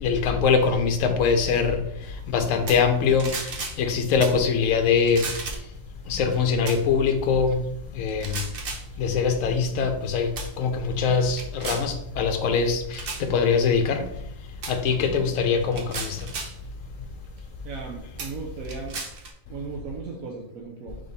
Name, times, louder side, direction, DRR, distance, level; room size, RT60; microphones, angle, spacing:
voice 1, 0.0-1.8 2.3-3.3 3.8-5.3 6.1-7.6 7.9-8.4 9.0-10.3 10.6-14.0 14.7-16.2, left 5 dB, 75° left, 6 dB, 1.0 m, -22 dB
sound 1, 2.7-2.9 3.2-3.8 4.2-4.4 5.1-5.7 6.7-6.8 8.1-8.9 9.7-10.0 10.4-10.5 11.0-11.9 12.9-13.3 14.6-14.8 15.6-16.6 17.4-17.5 18.2-19.3, right 4 dB, 50° right, 0.8 m, -34 dB
voice 2, 17.6-19.0 19.5-21.0, right 4 dB, 85° right, -1 dB, 1.1 m, -36 dB
3.7 x 3.6 x 4.0 m, 0.77 s
omnidirectional pair, 1.4 m